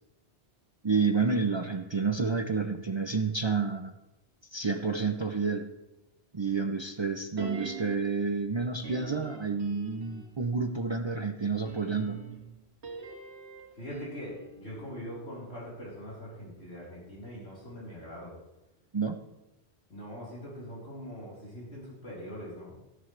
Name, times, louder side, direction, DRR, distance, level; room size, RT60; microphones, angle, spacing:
voice 1, 0.8-3.9 4.5-5.7 6.3-12.2 18.9-19.2, right 4 dB, 35° right, 7 dB, 0.5 m, -29 dB
sound 1, 7.4-8.2 8.8-10.5 11.5-15.7 16.0-16.1, right 5 dB, 75° right, 1.7 m, -44 dB
voice 2, 13.7-18.4 19.9-22.8, equal, 75° left, -7 dB, 4.3 m, -42 dB
13.0 x 12.5 x 3.3 m, 0.94 s
omnidirectional pair, 1.1 m